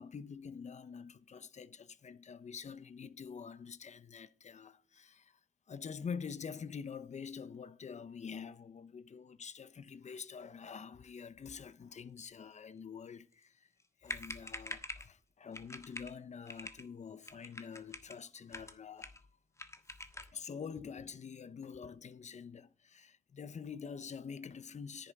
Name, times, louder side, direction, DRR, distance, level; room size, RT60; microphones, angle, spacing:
voice 1, 0.0-5.4 5.7-13.7 14.0-19.2 20.3-25.1, left 6 dB, 55° left, 0.8 m, -46 dB
sound 1, 13.8-13.9 14.1-15.1 15.5-16.1 16.5-16.8 17.2-18.2 18.5-19.3 19.6-20.4, left 2 dB, 20° left, 1.4 m, -45 dB
10.5 x 10.0 x 4.0 m
cardioid pair, 85°, 14 cm